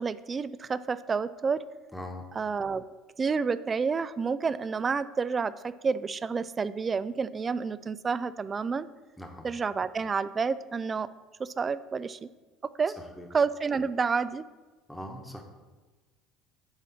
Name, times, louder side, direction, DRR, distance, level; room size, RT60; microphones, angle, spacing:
voice 1, 0.0-1.6 2.4-2.8 3.2-8.9 9.4-11.1 11.4-12.3 12.8-13.0 13.3-14.4, right 5 dB, 30° right, 16 dB, 0.3 m, -29 dB
voice 2, 1.9-2.2 9.2-9.5 13.0-13.3 14.9-15.4, left 1 dB, 5° left, 3 dB, 1.2 m, -41 dB
9.6 x 4.1 x 4.2 m, 1.2 s
figure-of-eight pair, 65°, 0 cm